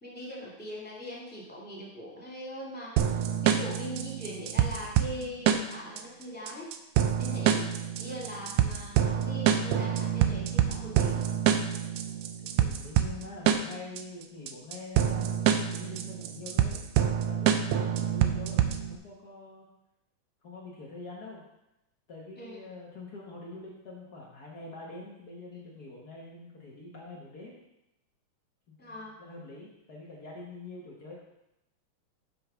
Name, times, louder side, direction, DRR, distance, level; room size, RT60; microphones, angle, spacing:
voice 1, 0.0-6.7 7.2-7.7 8.0-11.2 22.4-22.6 28.8-29.1, equal, 5° left, -5 dB, 1.7 m, -41 dB
sound 1, 3.0-19.0, right 9 dB, 85° right, 1.5 m, -26 dB
voice 2, 12.4-16.8 17.2-19.7 20.4-21.4 22.1-27.6 28.7-31.1, left 2 dB, 90° left, -4 dB, 0.8 m, -45 dB
6.3 x 5.7 x 5.6 m, 0.87 s
omnidirectional pair, 3.6 m